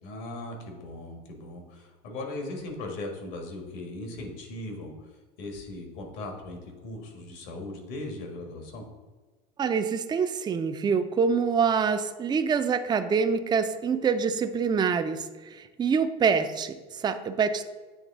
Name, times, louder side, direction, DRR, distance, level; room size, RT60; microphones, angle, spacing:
voice 1, 0.0-8.8, left 2 dB, 70° left, 2 dB, 1.6 m, -38 dB
voice 2, 9.6-17.6, right 6 dB, 20° right, 9 dB, 0.4 m, -26 dB
8.6 x 3.2 x 3.6 m, 1.3 s
supercardioid pair, 95°, 21 cm